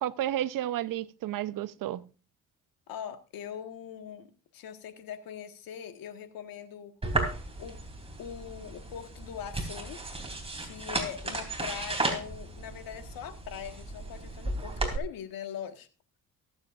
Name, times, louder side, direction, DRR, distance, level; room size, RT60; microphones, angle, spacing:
voice 1, 0.0-2.0, right 12 dB, 70° right, 0.8 m, -31 dB
voice 2, 2.9-4.3 4.5-6.9 7.6-7.8 8.2-10.0 10.6-15.9, left 9 dB, 80° left, 1.7 m, -41 dB
sound 1, 7.0-15.0, right 2 dB, 15° right, 3.3 m, -34 dB
23.0 x 8.0 x 2.5 m
cardioid pair, 95°, 34 cm